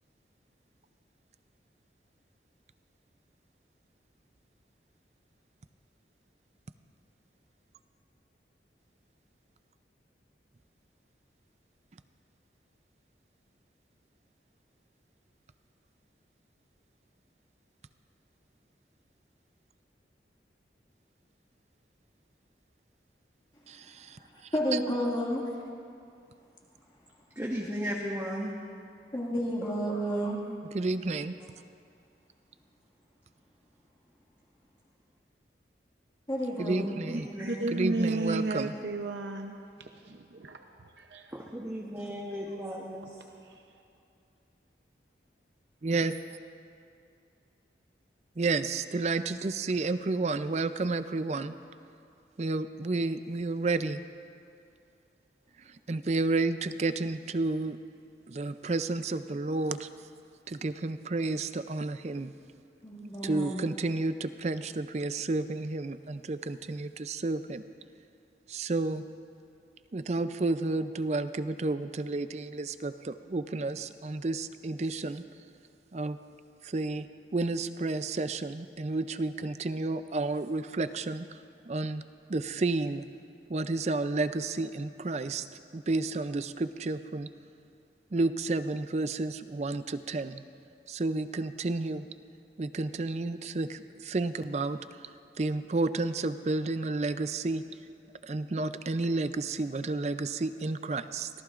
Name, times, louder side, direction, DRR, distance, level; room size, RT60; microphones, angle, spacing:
voice 1, 23.7-24.2 24.7-24.8 30.7-31.3 36.6-38.7 45.8-46.1 48.4-51.5 52.4-54.0 55.7-57.8 58.3-59.9 60.5-62.3 63.2-67.7 68.5-69.0 69.9-75.2 75.9-76.2 76.6-77.1 77.3-81.4 81.7-82.0 82.3-83.1 83.5-85.4 85.7-87.3 88.1-90.4 90.9-92.1 92.6-94.8 95.4-97.6 98.2-101.3, right 3 dB, 40° right, 11 dB, 0.4 m, -31 dB
voice 2, 24.5-25.4 29.1-30.4 36.3-37.0 62.8-63.6, equal, 25° left, -3 dB, 2.0 m, -31 dB
voice 3, 27.3-28.5 29.6-29.7 30.1-30.2 37.0-37.7 41.3-43.2, equal, 15° right, -4 dB, 1.1 m, -36 dB
voice 4, 37.4-41.3 43.5-43.6, right 2 dB, 85° right, 4 dB, 0.7 m, -33 dB
24.0 x 17.5 x 2.5 m, 2.5 s
head